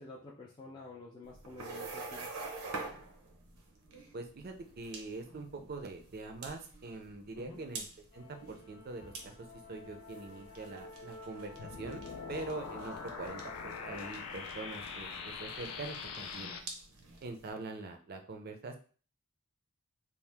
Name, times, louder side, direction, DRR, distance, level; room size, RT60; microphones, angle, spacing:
voice 1, 0.0-2.3 7.4-7.6, left 3 dB, 20° left, -3 dB, 0.4 m, -49 dB
sound 1, 1.2-17.5, right 3 dB, 85° right, 0.7 m, -48 dB
voice 2, 4.1-7.8 8.1-9.3 9.7-12.0 12.3-16.5 17.2-18.8, right 3 dB, 45° right, 6 dB, 0.4 m, -44 dB
Musical instrument, 8.1-14.1, left 4 dB, 60° left, 0.7 m, -50 dB
sound 2, 11.6-16.6, left 5 dB, 90° left, 0.4 m, -43 dB
2.8 x 2.0 x 3.3 m, 0.39 s
head